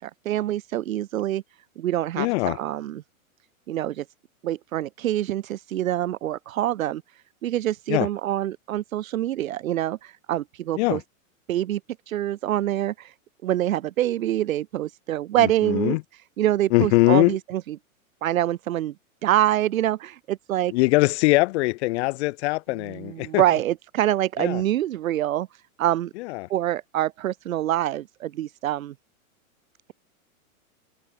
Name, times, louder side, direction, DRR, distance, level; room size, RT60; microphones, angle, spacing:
voice 1, 0.0-1.4 1.8-3.0 3.7-4.1 4.4-7.0 7.4-11.0 11.5-11.8 12.1-13.1 13.4-16.0 16.4-17.8 18.2-18.9 19.2-20.7 22.8-25.5 25.8-26.1 26.5-28.9, right 13 dB, 70° right, 5.2 m, -25 dB
voice 2, 2.2-2.6 7.9-8.1 10.8-11.0 15.4-16.0 16.7-17.4 20.7-23.4 24.4-24.6 26.2-26.5, left 21 dB, 50° left, 3.4 m, -22 dB
hypercardioid pair, 140°, 43 cm